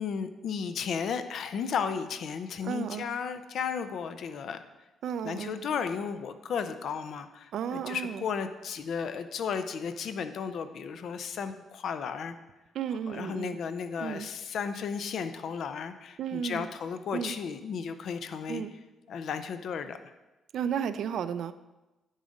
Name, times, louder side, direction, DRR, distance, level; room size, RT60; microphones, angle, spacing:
voice 1, 0.0-4.6 5.2-12.4 13.1-18.6 19.1-20.0, left 6 dB, 65° left, 10 dB, 0.6 m, -34 dB
voice 2, 2.6-3.1 5.0-5.5 7.5-8.2 12.7-13.6 14.0-14.3 16.2-16.7 17.1-17.3 18.5-18.7 20.5-21.5, right 8 dB, 70° right, 12 dB, 0.4 m, -33 dB
10.0 x 4.0 x 5.0 m, 1.1 s
cardioid pair, 90°, 0 cm